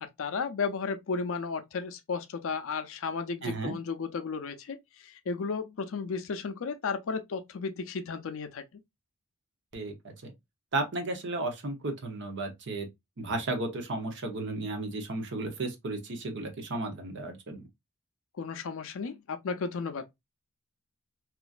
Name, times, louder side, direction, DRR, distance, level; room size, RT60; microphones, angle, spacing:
voice 1, 0.0-8.6 18.4-20.1, left 5 dB, 65° left, 0.5 m, -34 dB
voice 2, 3.4-3.7 9.7-10.3 10.7-12.9 13.2-17.6, right 2 dB, 55° right, 0.8 m, -34 dB
2.9 x 2.5 x 2.3 m
head